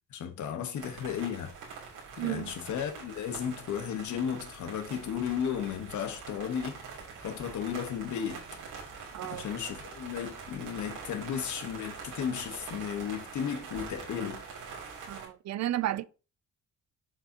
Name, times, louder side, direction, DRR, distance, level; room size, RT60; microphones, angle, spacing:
voice 1, 0.1-1.5 2.2-6.8 7.2-8.4 9.2-14.4, left 8 dB, 70° left, 1.3 m, -34 dB
sound 1, 0.7-15.2, right 5 dB, 90° right, 3.0 m, -44 dB
voice 2, 2.2-2.5 9.1-9.4 15.1-16.0, right 14 dB, 60° right, 0.5 m, -32 dB
7.4 x 5.9 x 2.9 m
cardioid pair, 90°, 30 cm